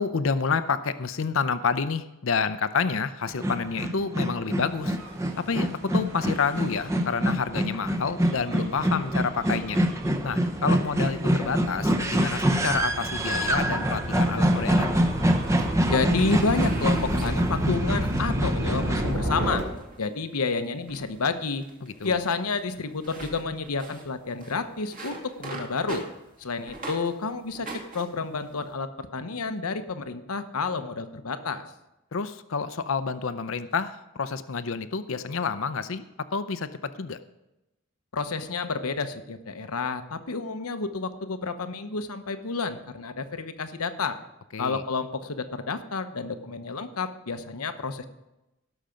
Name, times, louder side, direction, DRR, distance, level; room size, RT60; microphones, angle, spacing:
voice 1, 0.0-5.0 5.4-9.8 10.2-14.9 21.8-22.2 32.1-36.0 36.3-37.2 44.5-44.8, left 5 dB, 65° left, 13 dB, 0.6 m, -29 dB
sound 1, 3.3-19.1, equal, 15° right, 0.7 m, -26 dB
Gull seagull / Waves surf / Siren, 4.9-19.6, equal, 75° right, 3.6 m, -34 dB
sound 2, 14.2-14.9 15.3-18.3 18.7-19.2 19.7-20.1 20.4-20.6 20.9-27.1 27.5-28.7, right 2 dB, 40° right, 2.2 m, -43 dB
voice 2, 15.9-19.6 20.0-21.6 22.0-26.0 26.4-31.6 38.1-44.2 44.6-48.1, left 4 dB, 90° left, 10 dB, 0.9 m, -30 dB
17.0 x 6.5 x 5.1 m, 0.95 s
head